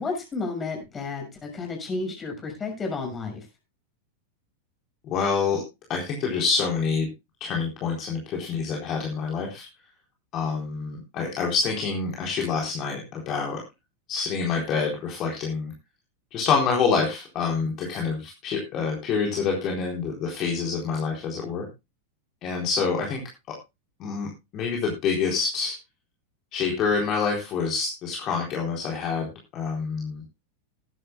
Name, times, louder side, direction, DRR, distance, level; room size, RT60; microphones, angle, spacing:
voice 1, 0.0-3.4, left 3 dB, 20° left, 3 dB, 6.5 m, -32 dB
voice 2, 5.0-5.6 5.9-7.1 7.4-9.7 10.3-13.6 14.1-15.7 16.3-21.7 22.4-23.2 24.0-25.8 26.5-29.3 29.5-30.2, left 5 dB, 35° left, 0 dB, 4.0 m, -27 dB
20.5 x 11.0 x 2.3 m, 0.25 s
figure-of-eight pair, 90°, 0 cm